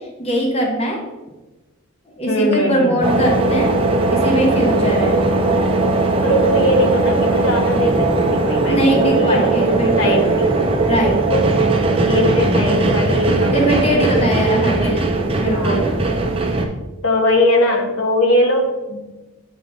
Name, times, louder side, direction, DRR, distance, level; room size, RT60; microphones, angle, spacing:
voice 1, 0.2-1.0 2.2-3.7 4.1-5.2 8.7-10.2 10.9-11.2 13.5-15.0 15.3-15.8, right 1 dB, 30° left, 0 dB, 0.9 m, -20 dB
voice 2, 2.3-3.0 6.2-10.5 11.3-11.7 12.0-15.0 15.5-15.8 17.0-19.0, left 1 dB, 70° left, 3 dB, 1.0 m, -20 dB
sound 1, 3.0-16.7, right 2 dB, 25° right, 0.6 m, -18 dB
8.0 x 3.6 x 3.7 m, 1.1 s
head